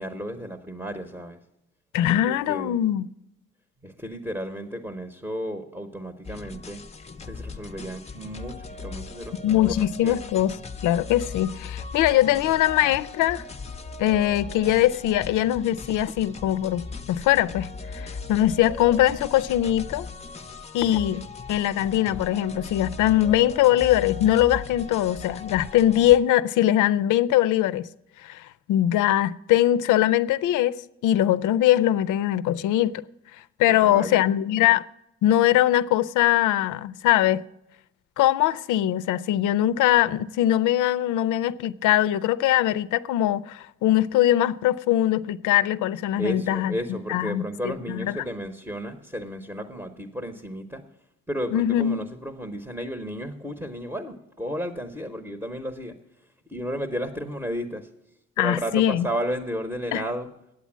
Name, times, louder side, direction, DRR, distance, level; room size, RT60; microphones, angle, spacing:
voice 1, 0.0-1.4 2.0-2.8 3.8-6.8 7.2-9.7 10.0-10.2 33.8-34.3 46.2-50.8 51.3-56.0 56.5-57.9 58.4-60.3, equal, 5° right, 0.9 m, -33 dB
voice 2, 1.9-3.1 9.4-10.6 10.8-13.4 14.0-20.1 20.7-21.2 21.5-27.9 28.2-33.0 33.6-34.8 35.2-37.4 38.2-46.7 47.1-48.2 51.5-52.1 58.4-59.1 59.9-60.0, left 13 dB, 80° left, 0.5 m, -22 dB
sound 1, 6.2-26.2, left 4 dB, 20° left, 0.6 m, -38 dB
8.7 x 8.2 x 7.2 m
cardioid pair, 90°, 30 cm